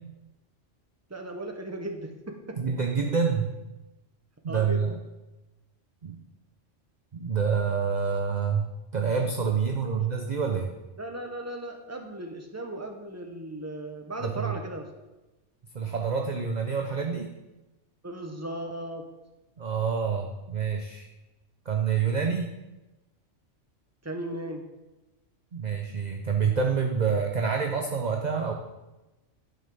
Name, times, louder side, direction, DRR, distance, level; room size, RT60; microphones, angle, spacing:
voice 1, 1.1-2.6 4.5-4.9 9.8-10.0 11.0-14.9 18.0-19.0 24.0-24.6, right 1 dB, 15° right, 3 dB, 1.1 m, -36 dB
voice 2, 2.6-3.5 4.4-5.0 6.0-6.2 7.1-10.7 14.2-14.5 15.7-17.3 19.6-21.1 21.7-22.5 25.5-28.5, right 6 dB, 40° right, 3 dB, 0.8 m, -27 dB
11.0 x 5.4 x 5.5 m, 1.1 s
omnidirectional pair, 1.3 m